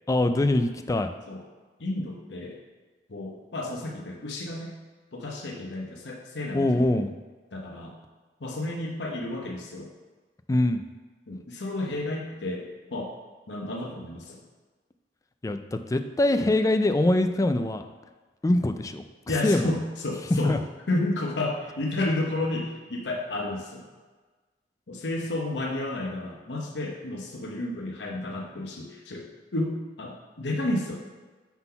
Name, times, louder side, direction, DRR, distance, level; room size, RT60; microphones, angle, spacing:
voice 1, 0.1-1.1 6.5-7.1 10.5-10.8 15.4-17.8 18.4-19.0 19.4-19.7 20.4-20.6, left 1 dB, 20° left, 8 dB, 0.3 m, -23 dB
voice 2, 1.8-2.6 3.1-4.7 5.1-7.0 7.5-8.0 8.4-9.9 11.3-13.1 13.5-14.4 19.3-20.5 20.9-23.9 24.9-31.0, left 2 dB, 90° left, 0 dB, 0.9 m, -31 dB
5.9 x 3.8 x 5.7 m, 1.3 s
head